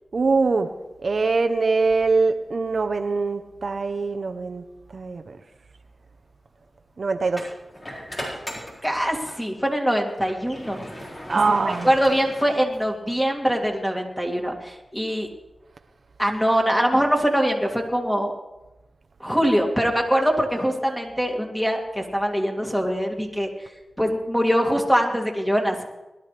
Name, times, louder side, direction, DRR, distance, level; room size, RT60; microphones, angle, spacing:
voice 1, 0.1-0.7 1.0-4.6 4.9-5.4 7.0-7.4 11.3-11.9, right 4 dB, 70° right, 7 dB, 0.7 m, -23 dB
sound 1, 5.2-5.4 7.3-9.4 9.9-13.1, equal, 45° left, 5.1 m, -38 dB
voice 2, 8.8-10.9 11.8-15.3 16.2-18.3 19.2-23.5 24.0-25.8, equal, 5° left, 1 dB, 2.4 m, -23 dB
21.0 x 12.0 x 3.3 m, 1.0 s
cardioid pair, 50°, 0 cm